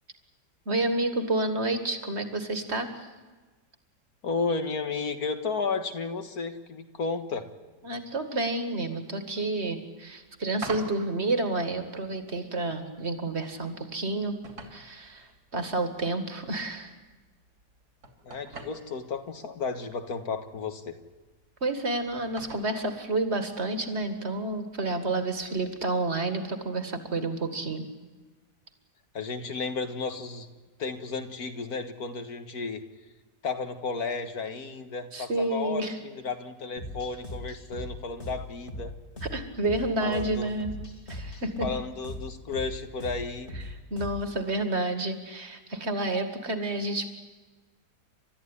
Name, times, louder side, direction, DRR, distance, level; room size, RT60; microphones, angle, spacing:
voice 1, 0.7-2.9 7.8-14.4 14.7-16.9 21.6-27.9 35.1-36.0 39.2-40.8 41.1-41.7 43.9-47.1, right 2 dB, 40° right, 8 dB, 2.2 m, -30 dB
voice 2, 4.2-7.5 18.2-21.0 29.1-30.5 30.8-32.8 33.4-38.9 40.0-40.5 41.6-43.5, left 4 dB, 60° left, 8 dB, 2.0 m, -33 dB
sound 1, 10.0-26.4, right 3 dB, 65° right, 3.3 m, -49 dB
sound 2, 36.8-44.4, left 1 dB, 40° left, 3.4 m, -40 dB
29.5 x 13.5 x 10.0 m, 1.3 s
omnidirectional pair, 1.8 m